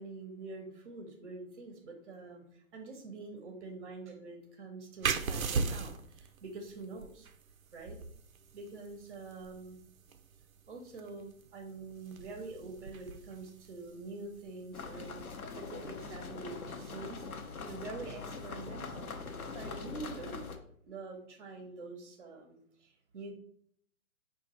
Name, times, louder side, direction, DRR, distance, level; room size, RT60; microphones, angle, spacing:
voice 1, 0.0-7.3 7.7-8.0 8.5-9.8 10.7-15.2 15.5-19.1 19.5-20.4 20.9-23.3, right 3 dB, 40° right, 3 dB, 0.7 m, -46 dB
sound 1, 5.0-16.3, right 5 dB, 75° right, 0.5 m, -40 dB
sound 2, 14.7-20.6, left 4 dB, 80° left, 0.8 m, -43 dB
5.1 x 2.4 x 3.9 m, 0.62 s
figure-of-eight pair, 120°, 42 cm